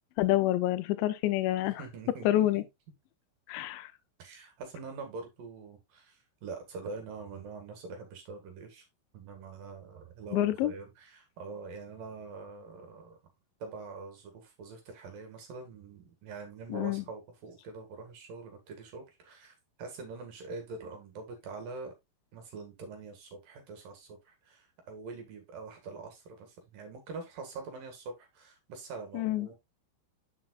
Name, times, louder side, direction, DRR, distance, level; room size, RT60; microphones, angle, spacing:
voice 1, 0.2-1.8 2.2-2.6 3.5-3.9 10.3-10.7 16.7-17.0 29.1-29.5, left 14 dB, 90° left, 2.5 m, -27 dB
voice 2, 1.6-2.6 4.2-8.9 9.1-13.2 13.6-21.9 22.3-29.6, right 4 dB, 55° right, 2.7 m, -44 dB
7.5 x 7.3 x 2.3 m
omnidirectional pair, 5.9 m